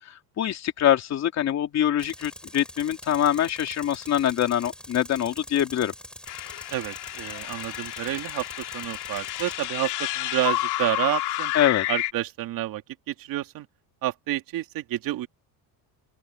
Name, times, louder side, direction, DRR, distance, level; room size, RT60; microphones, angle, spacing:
voice 1, 0.0-5.9 11.5-11.9, left 11 dB, 40° left, 3.2 m, -24 dB
Tools, 2.0-9.7, equal, ahead, 3.5 m, -44 dB
sound 1, 6.3-12.1, left 17 dB, 65° left, 2.9 m, -30 dB
voice 2, 6.7-11.5 11.9-12.8 13.1-13.7 14.0-15.3, right 14 dB, 50° right, 2.5 m, -29 dB
open air
cardioid pair, 160°, 43 cm